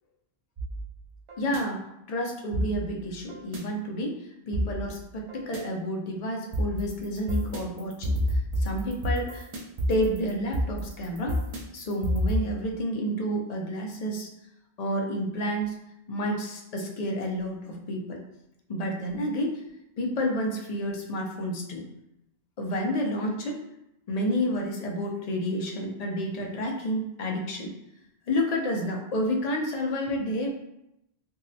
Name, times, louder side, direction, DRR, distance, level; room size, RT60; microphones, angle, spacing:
sound 1, 0.6-1.6 2.5-3.6 4.5-5.6 6.5-12.4, equal, 50° right, 0.4 m, -30 dB
voice 1, 1.4-1.8 2.1-8.2 8.6-9.5 9.9-11.4 11.7-14.3 14.8-15.8 16.1-18.2 18.7-19.6 20.0-21.8 22.6-23.6 24.1-27.7 28.3-30.5, equal, 55° left, 0 dB, 0.5 m, -30 dB
3.6 x 2.0 x 2.6 m, 0.86 s
omnidirectional pair, 1.1 m